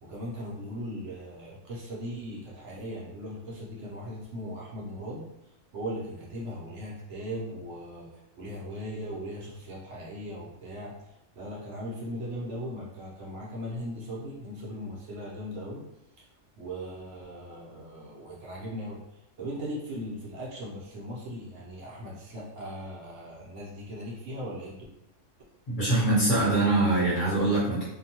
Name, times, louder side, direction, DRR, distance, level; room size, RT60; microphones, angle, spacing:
voice 1, 0.0-5.2 5.7-15.8 16.2-16.3 16.6-19.0 19.4-24.8, equal, 70° right, -4 dB, 1.0 m, -38 dB
voice 2, 25.7-27.8, right 2 dB, 40° left, -8 dB, 1.1 m, -23 dB
2.6 x 2.1 x 2.8 m, 0.83 s
omnidirectional pair, 1.3 m